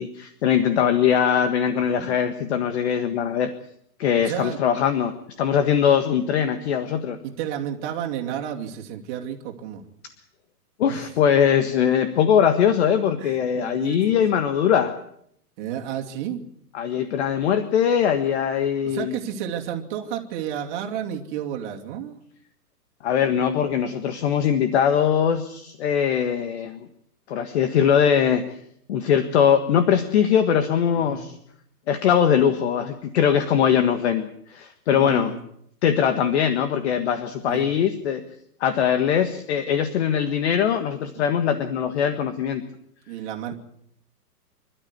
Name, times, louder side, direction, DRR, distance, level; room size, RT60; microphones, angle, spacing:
voice 1, 0.0-3.5 4.0-7.2 10.8-14.9 16.7-19.1 23.0-26.9 27.3-28.4 28.9-31.4 31.9-35.3 35.8-38.2 38.6-42.6, left 8 dB, 45° left, 10 dB, 1.6 m, -21 dB
voice 2, 4.2-4.6 7.2-9.8 10.9-11.0 13.2-14.4 15.6-16.4 18.8-22.2 31.0-31.3 34.9-35.4 37.5-37.7 41.1-41.4 43.1-43.5, right 9 dB, 30° right, 1 dB, 2.6 m, -32 dB
26.0 x 12.5 x 9.6 m, 0.71 s
hypercardioid pair, 150°, 47 cm